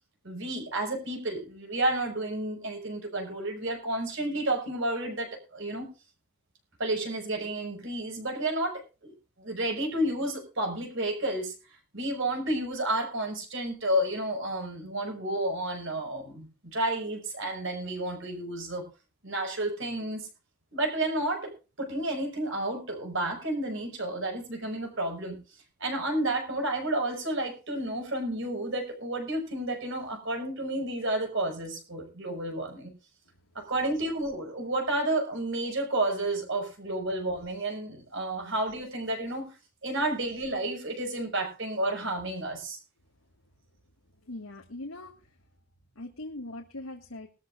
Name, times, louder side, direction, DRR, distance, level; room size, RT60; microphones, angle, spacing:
voice 1, 0.2-5.9 6.8-11.5 11.9-18.8 19.2-20.3 20.7-21.5 21.8-25.4 25.8-32.9 33.6-39.5 39.8-42.8, right 1 dB, 60° right, 3 dB, 5.5 m, -31 dB
voice 2, 44.3-45.1 46.0-47.3, left 2 dB, 85° left, 1 dB, 1.9 m, -40 dB
21.0 x 13.0 x 2.5 m, 0.31 s
head